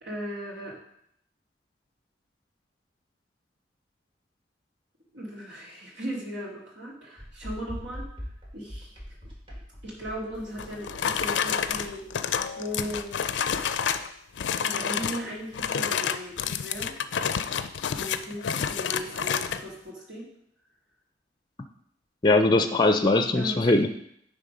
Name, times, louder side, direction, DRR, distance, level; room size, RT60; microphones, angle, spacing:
voice 1, 0.0-0.8 5.1-8.0 8.5-8.9 9.8-12.0 12.6-13.2 14.6-16.9 17.9-20.3 23.3-23.7, equal, 90° right, -5 dB, 2.3 m, -37 dB
sound 1, 7.2-14.0, equal, 30° right, 1.7 m, -43 dB
sound 2, 10.6-14.1 14.4-15.2 15.5-19.6, left 7 dB, 85° left, 0.4 m, -29 dB
voice 2, 22.2-23.9, left 2 dB, 25° left, 7 dB, 0.4 m, -21 dB
9.6 x 3.6 x 5.1 m, 0.71 s
head